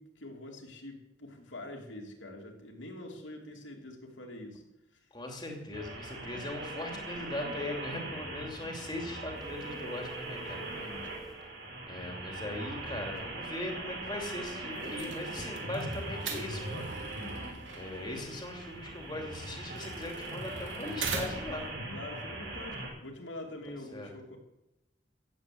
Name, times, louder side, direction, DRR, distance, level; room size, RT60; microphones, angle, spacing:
voice 1, 0.0-4.6 10.4-11.3 21.9-24.4, left 1 dB, 85° left, 2 dB, 3.1 m, -45 dB
voice 2, 5.1-10.6 11.9-17.1 17.7-21.6 23.7-24.1, left 1 dB, 25° left, 2 dB, 2.8 m, -39 dB
sound 1, 5.7-22.9, right 2 dB, 70° right, 6.0 m, -41 dB
sound 2, 9.4-11.5, right 2 dB, ahead, 3.7 m, -48 dB
sound 3, 14.7-21.7, right 5 dB, 85° right, 2.7 m, -42 dB
16.0 x 8.9 x 7.9 m, 0.92 s
head